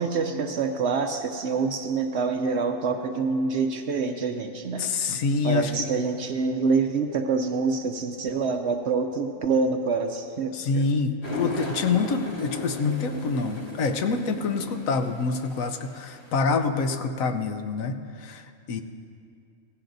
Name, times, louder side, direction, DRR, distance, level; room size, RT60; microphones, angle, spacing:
voice 1, 0.0-4.8 5.4-10.9, right 4 dB, 60° right, 5 dB, 0.8 m, -26 dB
voice 2, 4.8-5.9 10.5-18.8, left 4 dB, 70° left, 7 dB, 1.1 m, -26 dB
sound 1, 11.2-16.3, left 1 dB, 45° left, 2.1 m, -36 dB
16.5 x 15.5 x 2.6 m, 2.4 s
omnidirectional pair, 1.5 m